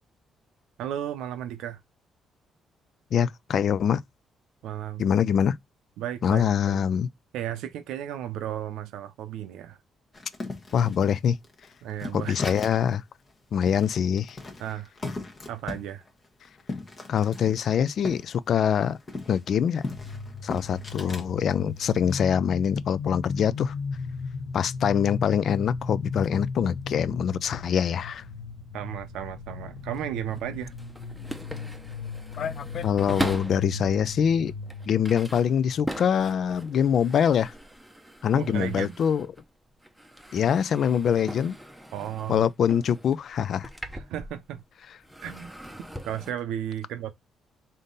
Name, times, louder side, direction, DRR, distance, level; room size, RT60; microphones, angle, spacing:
voice 1, 0.8-1.8 4.6-5.0 6.0-6.8 7.3-9.8 11.8-12.4 14.6-14.9 15.5-16.0 21.0-21.2 28.7-30.7 38.4-38.9 41.9-42.5 43.9-44.6 45.2-45.5 46.0-47.1, right 11 dB, 90° right, 0.5 m, -34 dB
voice 2, 3.1-4.0 5.0-5.6 6.2-7.1 10.7-11.4 12.1-13.0 13.5-14.4 17.1-19.0 19.3-19.8 20.4-23.7 24.5-28.2 32.4-34.5 34.9-37.5 38.2-39.3 40.3-41.6 42.3-43.7, left 8 dB, 60° left, 0.3 m, -24 dB
sound 1, 10.1-12.9 13.3-13.4 13.7-18.3 18.6-21.3 21.8-22.1, left 3 dB, 35° left, 0.9 m, -38 dB
sound 2, 19.9-35.8, left 4 dB, 80° left, 0.9 m, -36 dB
sound 3, 29.8-33.7 34.3-39.5 39.8-44.7 45.0-46.3, right 1 dB, 5° right, 0.7 m, -40 dB
3.5 x 2.7 x 3.8 m
cardioid pair, 90°, 0 cm